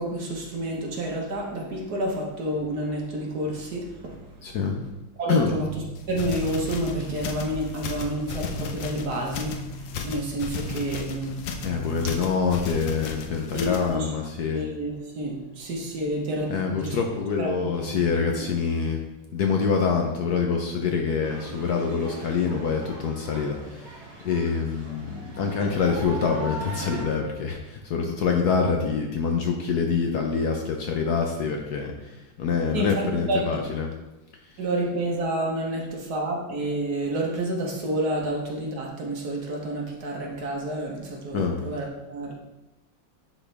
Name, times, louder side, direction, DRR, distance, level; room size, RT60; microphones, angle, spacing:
voice 1, 0.0-4.1 5.2-12.1 13.5-14.1 14.4-17.0 17.4-18.0 18.4-18.5 32.7-33.6 34.6-42.3, right 1 dB, 55° right, -1 dB, 1.6 m, -29 dB
voice 2, 4.4-4.8 5.3-5.5 11.6-14.6 16.5-19.0 19.3-24.0 24.2-33.9 41.3-41.6, left 5 dB, 65° left, 2 dB, 1.1 m, -26 dB
sound 1, 6.0-13.9, left 6 dB, 85° left, 1.5 m, -35 dB
sound 2, 21.2-27.0, right 2 dB, 75° right, 3.0 m, -39 dB
10.0 x 4.3 x 3.4 m, 1.0 s
omnidirectional pair, 2.1 m